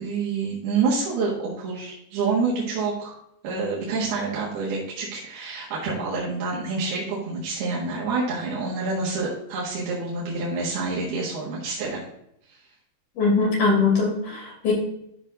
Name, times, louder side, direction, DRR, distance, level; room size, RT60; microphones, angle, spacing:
voice 1, 0.0-3.2 3.4-12.0 12.5-12.6, right 4 dB, 80° right, -6 dB, 3.6 m, -27 dB
voice 2, 13.2-14.7, left 4 dB, 50° left, -2 dB, 4.1 m, -21 dB
12.5 x 6.3 x 2.6 m, 0.76 s
omnidirectional pair, 4.6 m